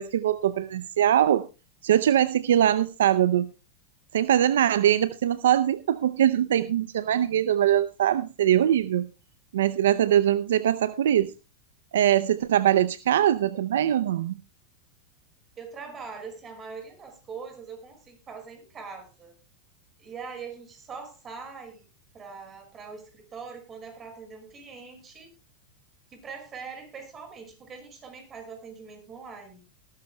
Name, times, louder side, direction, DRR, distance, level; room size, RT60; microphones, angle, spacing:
voice 1, 0.0-1.5 1.8-3.5 4.1-9.1 9.5-11.3 11.9-14.3, right 11 dB, 80° right, 16 dB, 0.6 m, -22 dB
voice 2, 15.6-19.3 20.0-21.9 22.1-25.3 26.1-29.7, right 5 dB, 30° right, 6 dB, 5.4 m, -42 dB
19.5 x 12.5 x 2.3 m, 0.29 s
hypercardioid pair, 105°, 0 cm